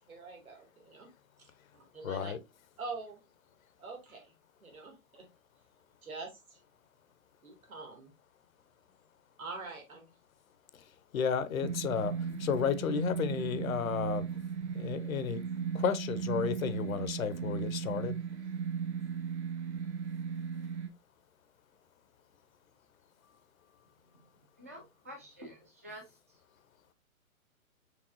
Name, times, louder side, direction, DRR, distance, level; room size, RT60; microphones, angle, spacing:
voice 1, 0.1-1.1 1.4-2.3 2.8-3.2 3.8-4.3 4.6-5.3 6.0-6.6 7.4-8.1 9.4-10.1, right 3 dB, 75° right, 2.2 m, -45 dB
voice 2, 2.0-2.4 10.7-14.3 14.7-15.4 15.7-18.2, left 7 dB, 70° left, 0.7 m, -33 dB
sound 1, 11.6-20.9, right 6 dB, 50° right, 1.0 m, -36 dB
voice 3, 24.6-26.0, right 1 dB, 10° right, 0.4 m, -48 dB
4.7 x 3.4 x 2.5 m
hypercardioid pair, 130°, 43 cm